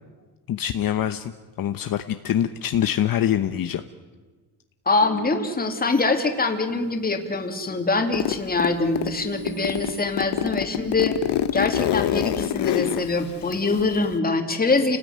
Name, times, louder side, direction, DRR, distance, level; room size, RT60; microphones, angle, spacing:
voice 1, 0.5-1.2 1.6-3.8, left 10 dB, 60° left, 8 dB, 1.0 m, -24 dB
voice 2, 4.9-11.1 11.5-15.0, left 3 dB, 20° left, 4 dB, 2.7 m, -24 dB
sound 1, 5.0-7.0 7.5-10.0, right 6 dB, 55° right, 4.5 m, -41 dB
Zipper (clothing), 8.1-9.2 9.5-14.2, left 11 dB, 85° left, 1.2 m, -26 dB
30.0 x 19.0 x 9.5 m, 1.3 s
cardioid pair, 160°, 40 cm